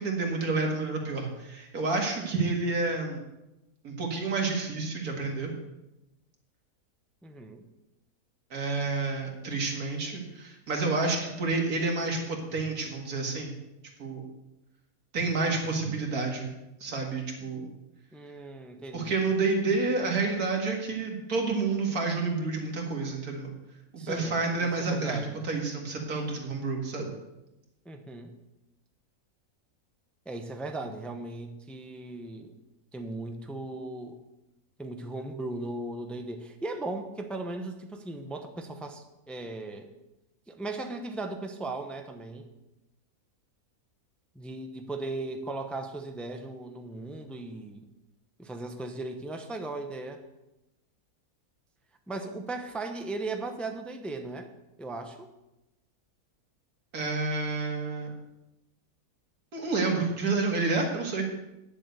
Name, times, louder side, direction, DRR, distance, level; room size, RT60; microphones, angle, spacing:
voice 1, 0.0-3.2 3.8-5.5 8.5-13.5 14.0-14.2 15.1-16.5 16.8-17.7 18.9-23.5 24.1-27.1 56.9-58.1 59.5-61.3, right 3 dB, 80° right, 1 dB, 2.4 m, -29 dB
voice 2, 7.2-7.7 18.1-19.2 24.0-25.4 27.8-28.3 30.3-32.5 32.9-34.2 34.8-39.9 40.5-42.5 44.3-47.9 48.4-50.2 52.1-54.5 54.8-55.3, right 2 dB, ahead, 5 dB, 0.6 m, -37 dB
9.8 x 7.4 x 6.7 m, 0.95 s
omnidirectional pair, 1.6 m